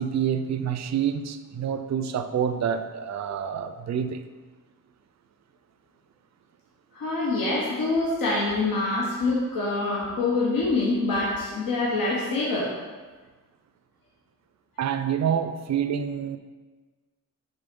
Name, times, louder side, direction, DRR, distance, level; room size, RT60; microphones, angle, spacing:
voice 1, 0.0-4.2 14.8-16.4, right 8 dB, 55° right, 10 dB, 0.4 m, -27 dB
voice 2, 6.9-12.7, left 2 dB, 80° left, -5 dB, 1.2 m, -25 dB
5.6 x 3.9 x 5.3 m, 1.4 s
wide cardioid pair, 115°, 34 cm